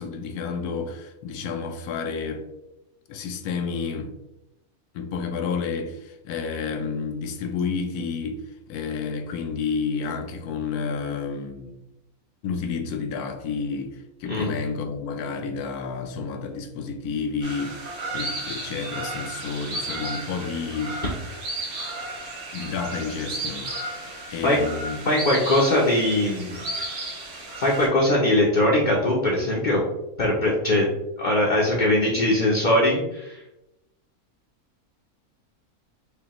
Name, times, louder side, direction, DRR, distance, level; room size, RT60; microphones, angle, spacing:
voice 1, 0.0-2.4 3.1-4.1 4.9-8.4 8.7-11.7 12.4-21.0 22.5-25.0, left 5 dB, 85° left, 1.1 m, -30 dB
sound 1, 17.4-27.9, right 2 dB, 55° right, 1.3 m, -34 dB
voice 2, 25.1-26.6 27.6-29.8 30.2-30.9 31.2-33.4, left 1 dB, 45° left, 0.6 m, -21 dB
5.1 x 2.2 x 2.9 m
omnidirectional pair, 1.6 m